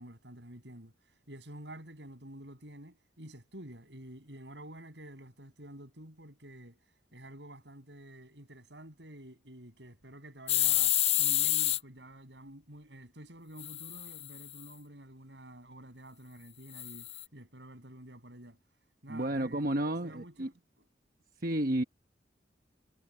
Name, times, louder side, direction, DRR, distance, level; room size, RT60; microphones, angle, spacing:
voice 1, 0.0-6.8 7.1-18.6 19.0-20.6, right 1 dB, 75° right, 7.7 m, -50 dB
sound 1, 10.5-11.8 13.6-14.6 16.7-17.2, left 12 dB, 35° left, 0.5 m, -28 dB
voice 2, 19.1-20.5 21.4-21.8, right 1 dB, 50° right, 1.1 m, -31 dB
head